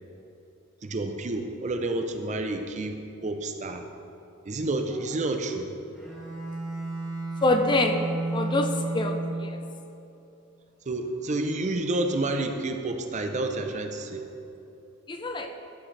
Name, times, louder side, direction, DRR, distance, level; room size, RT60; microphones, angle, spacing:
voice 1, 0.8-3.0 3.2-3.8 4.5-5.7 10.9-14.3, right 2 dB, 35° right, 6 dB, 0.5 m, -29 dB
Bowed string instrument, 5.9-9.8, right 2 dB, ahead, 1.9 m, -32 dB
voice 2, 7.4-8.0 8.3-9.6 15.1-15.5, left 2 dB, 20° left, 5 dB, 0.4 m, -25 dB
11.5 x 6.2 x 3.2 m, 2.9 s
head